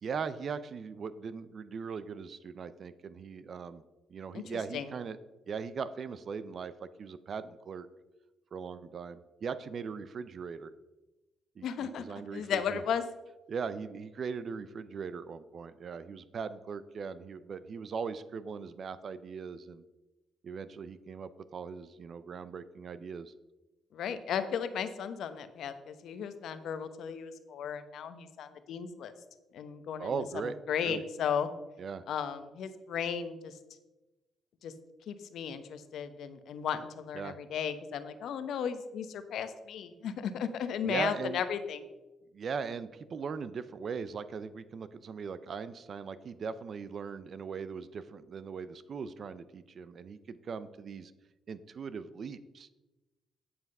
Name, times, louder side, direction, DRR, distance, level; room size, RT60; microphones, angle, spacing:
voice 1, 0.0-3.8 4.1-5.2 5.5-7.9 8.5-10.7 11.6-12.8 13.5-19.8 20.4-23.3 30.0-30.6 30.8-31.0 31.8-32.0 37.1-37.4 40.8-41.4 42.3-51.1 51.5-52.7, right 6 dB, 50° right, 14 dB, 0.5 m, -39 dB
voice 2, 4.3-4.9 11.6-12.0 12.3-13.0 23.9-29.1 29.5-31.5 32.1-33.6 34.6-34.7 35.1-41.8, left 7 dB, 70° left, 10 dB, 0.9 m, -35 dB
9.7 x 5.9 x 5.4 m, 1.1 s
cardioid pair, 90°, 0 cm